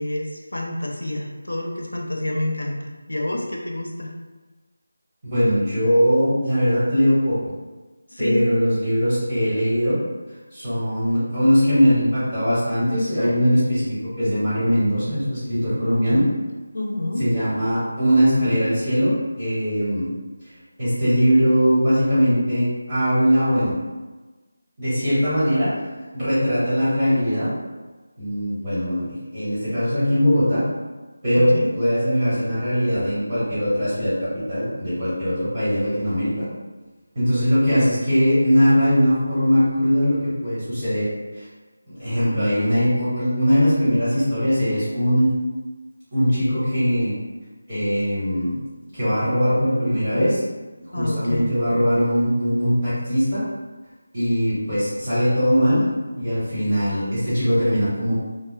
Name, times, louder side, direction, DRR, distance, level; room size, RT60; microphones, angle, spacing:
voice 1, 0.0-4.1 8.1-8.5 16.7-17.2 31.3-31.7 50.9-51.5, left 1 dB, 80° left, 0 dB, 0.5 m, -27 dB
voice 2, 5.2-7.5 8.2-10.0 10.5-16.2 17.2-19.1 19.4-20.1 20.8-23.8 24.8-25.8 26.1-27.5 28.2-30.6 31.2-36.5 37.1-41.1 41.3-41.5 41.8-45.3 46.1-47.1 47.7-48.6 48.9-50.4 50.9-53.4 54.1-55.9 56.1-58.1, equal, 35° right, -13 dB, 1.3 m, -20 dB
2.7 x 2.1 x 2.3 m, 1.2 s
figure-of-eight pair, 165°, 0 cm